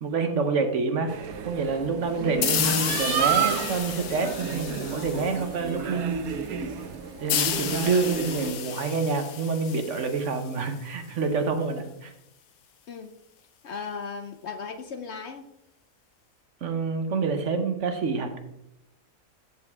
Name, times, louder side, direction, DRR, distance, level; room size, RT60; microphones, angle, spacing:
voice 1, 0.0-6.3 7.2-12.1 16.6-18.4, right 4 dB, 60° right, 7 dB, 1.2 m, -27 dB
sound 1, 1.1-8.5, right 7 dB, 90° right, 1.3 m, -31 dB
sound 2, 2.4-5.8 7.3-10.8, left 9 dB, 90° left, 1.2 m, -31 dB
voice 2, 13.6-15.4, left 5 dB, 60° left, 8 dB, 0.8 m, -36 dB
13.0 x 5.2 x 3.6 m, 0.84 s
omnidirectional pair, 1.5 m